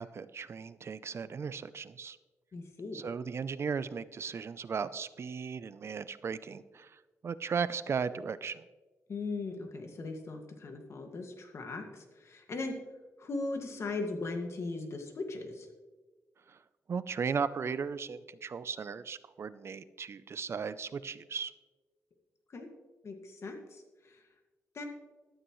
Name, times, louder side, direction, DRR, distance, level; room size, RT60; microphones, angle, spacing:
voice 1, 0.0-2.2 2.9-8.6 16.5-16.6 16.9-21.5, right 6 dB, 50° right, 15 dB, 0.5 m, -36 dB
voice 2, 2.5-3.1 9.1-12.8 13.2-15.7 22.5-22.7 23.0-23.8 24.1-24.2 24.7-24.8, left 3 dB, 55° left, 4 dB, 1.9 m, -38 dB
15.0 x 12.5 x 3.1 m, 1.2 s
wide cardioid pair, 110°, 6 cm